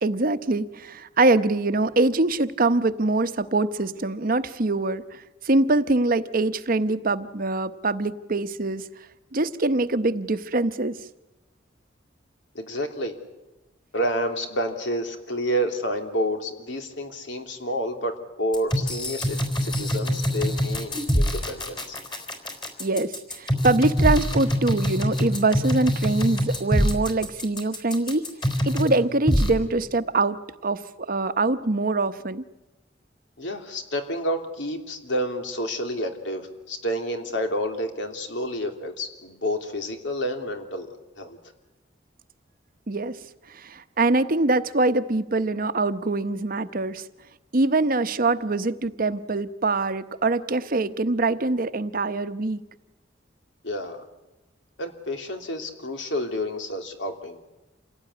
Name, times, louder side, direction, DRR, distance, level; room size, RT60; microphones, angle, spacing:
voice 1, 0.0-8.9 9.3-11.0 22.8-28.3 28.7-30.4 30.6-30.8 31.1-32.4 42.9-43.2 43.5-47.0 47.5-52.6, right 2 dB, 50° right, 12 dB, 0.9 m, -24 dB
voice 2, 12.5-13.1 13.9-22.0 33.4-41.4 53.6-54.0 54.8-57.4, equal, 80° left, 5 dB, 3.1 m, -29 dB
sound 1, 18.5-28.9 29.3-29.5, equal, 25° left, 4.1 m, -24 dB
27.5 x 17.5 x 9.7 m, 1.0 s
head